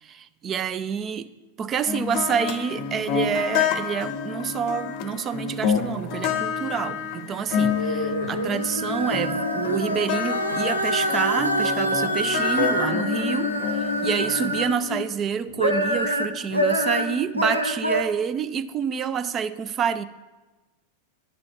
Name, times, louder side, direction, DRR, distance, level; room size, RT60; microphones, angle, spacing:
voice 1, 0.0-1.3 1.6-20.0, right 7 dB, 25° right, 14 dB, 0.5 m, -28 dB
sound 1, 1.9-14.9, left 7 dB, 45° left, 0.7 m, -29 dB
sound 2, 7.6-15.0 15.5-18.0, equal, 90° right, 0.8 m, -26 dB
10.5 x 5.1 x 7.1 m, 1.2 s
figure-of-eight pair, 90°, 0 cm